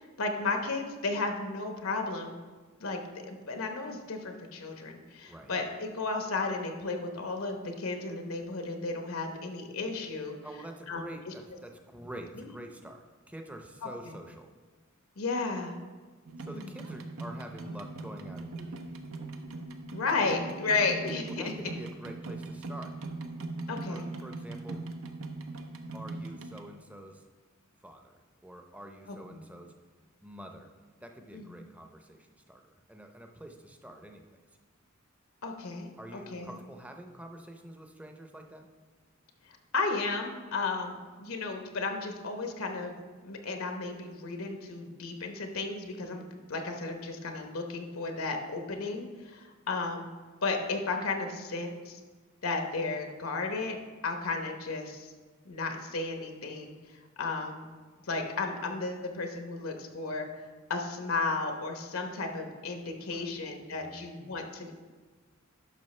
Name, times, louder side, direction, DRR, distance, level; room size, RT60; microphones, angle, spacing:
voice 1, 0.2-2.4 2.8-10.4 10.9-11.3 12.4-12.5 14.0-14.2 15.2-15.8 16.5-16.8 19.9-21.5 23.7-24.1 29.1-29.4 31.3-31.6 35.4-36.5 39.7-42.9 43.2-46.2 46.5-50.1 50.4-52.0 52.4-53.8 54.0-55.1 55.4-56.7 57.2-57.7 58.0-60.3 60.7-64.7, left 3 dB, 80° left, 4 dB, 0.9 m, -34 dB
voice 2, 10.4-14.5 16.4-18.9 21.3-22.9 23.9-24.9 25.9-27.2 27.8-29.7 30.2-30.7 31.0-34.4 36.0-38.7 63.0-63.4 63.7-64.1, right 1 dB, 5° right, 4 dB, 0.6 m, -47 dB
sound 1, 16.3-26.6, right 2 dB, 80° right, 0.7 m, -40 dB
11.0 x 5.9 x 3.2 m, 1.4 s
head